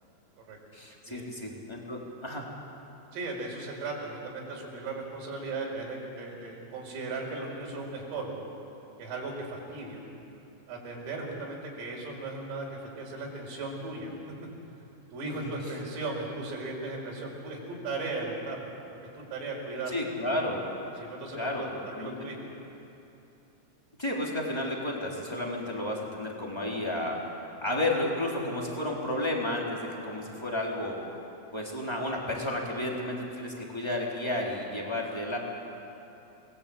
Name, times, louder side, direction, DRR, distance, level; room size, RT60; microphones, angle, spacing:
voice 1, 0.7-2.5 15.2-15.5 19.9-20.6 21.3-22.1 24.0-27.2 27.6-31.0 31.5-35.4, left 1 dB, 5° left, -2 dB, 2.8 m, -32 dB
voice 2, 3.1-8.4 9.0-10.0 10.7-14.1 14.4-14.5 15.1-18.7 19.3-19.9 21.0-21.7 22.0-22.4, right 3 dB, 85° right, -1 dB, 7.4 m, -37 dB
29.5 x 20.0 x 8.7 m, 2.9 s
omnidirectional pair, 5.9 m